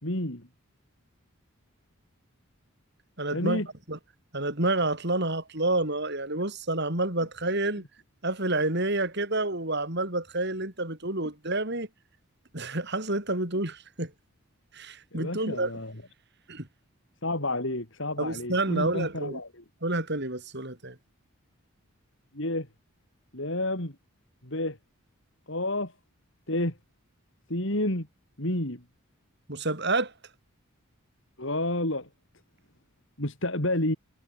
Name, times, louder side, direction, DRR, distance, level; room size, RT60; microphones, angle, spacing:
voice 1, 0.0-0.5 3.3-3.7 15.1-15.9 17.2-19.6 22.3-22.7 23.3-24.0 24.4-24.8 25.5-25.9 26.5-26.8 27.5-28.1 28.4-28.8 31.4-32.1 33.2-34.0, left 1 dB, 55° left, 4.1 m, -30 dB
voice 2, 3.2-3.6 3.9-4.0 4.3-7.8 8.2-11.9 12.5-14.1 14.7-15.7 16.5-16.7 18.2-19.4 19.8-20.9 29.5-30.1, right 2 dB, 50° right, 5.3 m, -29 dB
head